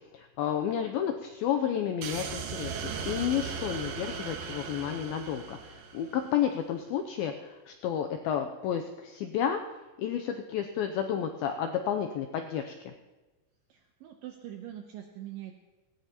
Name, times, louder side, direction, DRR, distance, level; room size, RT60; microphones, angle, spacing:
voice 1, 0.1-9.6 10.0-12.9, left 9 dB, 90° left, 5 dB, 2.1 m, -31 dB
sound 1, 2.0-6.4, right 6 dB, 70° right, 2.2 m, -37 dB
voice 2, 13.7-15.6, right 12 dB, 85° right, 4 dB, 2.0 m, -43 dB
18.5 x 17.5 x 2.9 m, 1.2 s
omnidirectional pair, 5.0 m